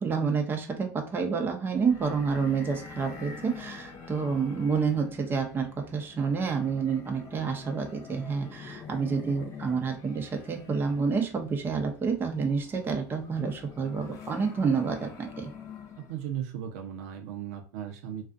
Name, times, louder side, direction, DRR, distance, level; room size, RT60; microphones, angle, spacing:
voice 1, 0.0-15.5, right 5 dB, 25° right, 3 dB, 0.6 m, -29 dB
sound 1, 1.8-16.3, left 6 dB, 35° left, 0.7 m, -46 dB
voice 2, 16.0-18.3, right 9 dB, 70° right, 3 dB, 0.6 m, -36 dB
2.4 x 2.4 x 2.4 m, 0.37 s
hypercardioid pair, 100°, 9 cm